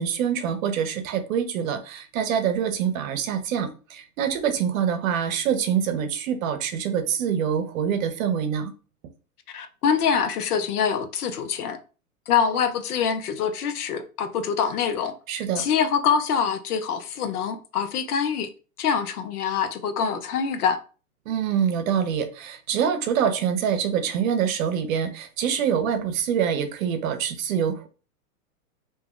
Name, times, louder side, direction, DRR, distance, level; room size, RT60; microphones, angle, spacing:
voice 1, 0.0-8.7 15.3-15.7 21.3-27.9, right 8 dB, 65° right, 0.7 m, -25 dB
voice 2, 9.5-11.8 12.3-15.2 15.6-18.5 18.8-20.8, left 7 dB, 80° left, 0.7 m, -25 dB
2.8 x 2.2 x 3.6 m
hypercardioid pair, 115°, 45 cm